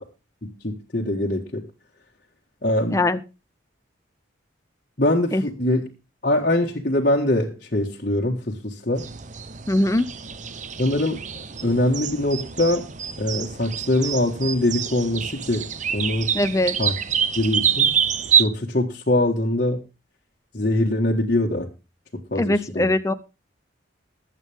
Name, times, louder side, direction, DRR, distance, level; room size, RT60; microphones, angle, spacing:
voice 1, 0.4-1.6 2.6-3.0 5.0-5.9 6.2-9.0 10.8-11.2 11.6-12.9 13.2-15.6 15.9-16.3 16.8-16.9 17.4-17.9 18.4-19.8 20.5-21.7 22.3-22.9, left 1 dB, 45° left, -3 dB, 1.6 m, -23 dB
voice 2, 2.9-3.2 5.3-5.4 9.7-10.1 16.3-16.8 22.4-23.1, left 1 dB, 15° left, 10 dB, 0.5 m, -21 dB
sound 1, 9.0-18.5, right 8 dB, 40° right, 0.8 m, -26 dB
20.0 x 8.3 x 3.5 m, 0.29 s
head